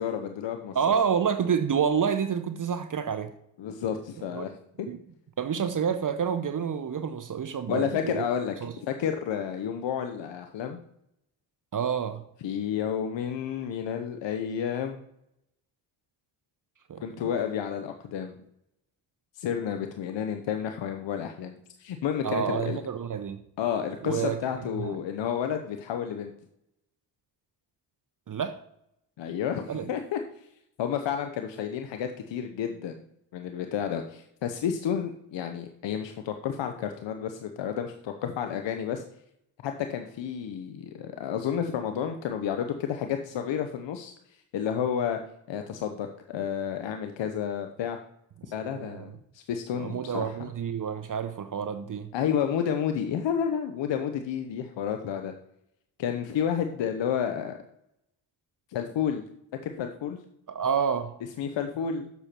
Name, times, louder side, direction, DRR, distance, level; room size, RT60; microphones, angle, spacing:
voice 1, 0.0-0.8 3.6-4.9 7.7-8.5 8.8-10.8 12.4-15.0 17.0-18.3 19.4-22.8 23.6-26.3 29.2-30.2 30.8-33.0 33.3-39.0 39.6-44.1 44.5-45.2 45.5-48.0 48.5-50.3 52.1-55.3 56.0-57.6 58.7-59.2 59.6-60.2 61.4-62.1, left 8 dB, 70° left, 0.9 m, -31 dB
voice 2, 0.7-3.3 4.3-4.4 4.9-5.0 5.4-8.2 8.6-8.7 11.7-12.3 16.9-17.0 22.2-23.4 24.0-24.4 24.8-25.0 28.3-28.6 29.7-29.9 48.7-49.1 49.7-52.1 60.5-61.1, right 7 dB, 45° right, 0.8 m, -28 dB
6.9 x 6.8 x 4.4 m
supercardioid pair, 55°, 46 cm